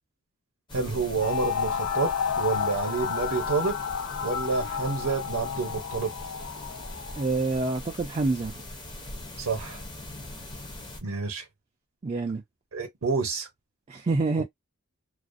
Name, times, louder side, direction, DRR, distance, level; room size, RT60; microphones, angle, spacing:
sound 1, 0.7-11.0, left 1 dB, 20° left, 0.6 m, -41 dB
voice 1, 0.7-2.1 2.4-3.7 4.2-6.1 9.4-9.8 11.0-11.4 12.7-13.5, right 4 dB, 65° right, 0.7 m, -28 dB
sound 2, 1.2-7.3, left 7 dB, 75° left, 0.4 m, -31 dB
voice 2, 7.2-8.5 12.0-12.4 13.9-14.4, right 3 dB, 30° right, 0.3 m, -27 dB
2.4 x 2.0 x 2.4 m
head